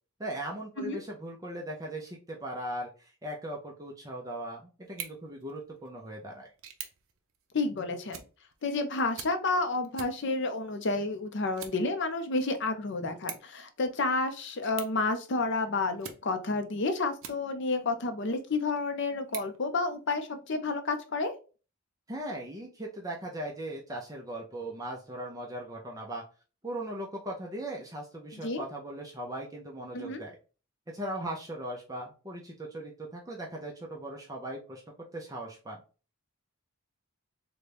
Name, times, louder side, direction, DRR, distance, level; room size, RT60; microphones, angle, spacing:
voice 1, 0.2-6.5 22.1-26.2 26.6-30.4 30.9-35.8, right 1 dB, 15° right, -1 dB, 0.5 m, -39 dB
sound 1, 4.8-17.8 18.3-20.4, right 8 dB, 65° right, 0.6 m, -49 dB
voice 2, 7.5-8.2 8.6-21.3 28.3-28.6 29.9-30.2, left 3 dB, 50° left, 8 dB, 0.5 m, -30 dB
3.9 x 2.2 x 3.3 m, 0.34 s
head